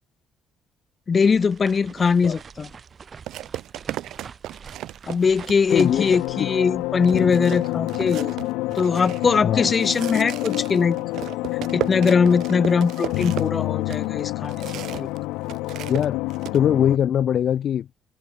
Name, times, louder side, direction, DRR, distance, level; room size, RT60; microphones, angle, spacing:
voice 1, 1.1-2.7 5.1-8.3 8.7-11.0 11.7-15.1, left 5 dB, 40° left, 1.6 m, -21 dB
sound 1, 1.1-7.5, right 6 dB, 45° right, 8.0 m, -45 dB
sound 2, 2.3-2.4 3.3-6.3 6.7-6.8 7.0-15.2 15.4-16.6, right 14 dB, 65° right, 2.0 m, -35 dB
sound 3, 5.7-17.0, left 21 dB, 75° left, 2.0 m, -28 dB
voice 2, 5.7-6.0 9.4-9.7 15.9-16.2 16.5-18.0, left 9 dB, 55° left, 0.7 m, -21 dB
hypercardioid pair, 50°, 0 cm